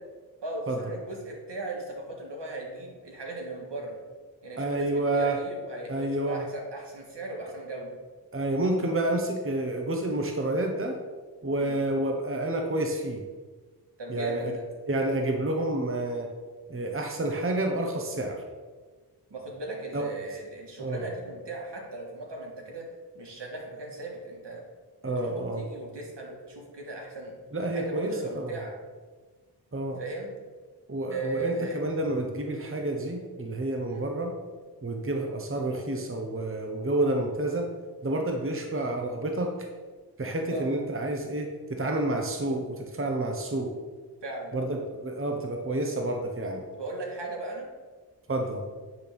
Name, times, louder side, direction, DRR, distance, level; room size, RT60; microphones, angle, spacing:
voice 1, 0.4-4.0 4.4-7.9 11.5-11.8 14.0-14.6 19.3-22.9 23.1-24.6 25.0-27.3 27.7-28.7 30.0-30.3 31.1-31.8 33.9-34.1 40.5-40.7 44.2-44.5 46.7-47.7, right 2 dB, 75° right, -1 dB, 1.8 m, -37 dB
voice 2, 4.6-5.4 5.9-6.4 8.3-11.0 11.4-13.2 14.1-14.6 14.9-16.3 16.7-18.4 19.9-20.0 20.8-21.1 25.0-25.6 27.5-28.6 29.7-30.0 30.9-34.3 34.8-37.7 38.0-39.5 40.2-43.7 44.5-46.6 48.3-48.6, right 1 dB, 30° right, 2 dB, 1.0 m, -29 dB
9.2 x 3.5 x 6.0 m, 1.4 s
wide cardioid pair, 65°, 42 cm